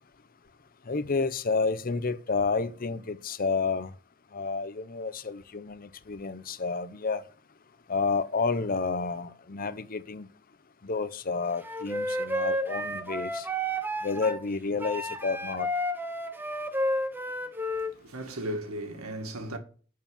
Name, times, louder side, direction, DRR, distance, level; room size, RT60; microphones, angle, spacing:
voice 1, 0.9-3.9 4.3-7.2 7.9-10.3 10.8-13.5 14.0-15.7, left 4 dB, 40° left, 0.7 m, -30 dB
Wind instrument woodwind instrument, 11.6-14.4 14.8-17.9, equal, 10° right, 0.9 m, -31 dB
voice 2, 17.8-19.6, right 1 dB, 70° right, 2.0 m, -36 dB
11.0 x 4.7 x 7.2 m
head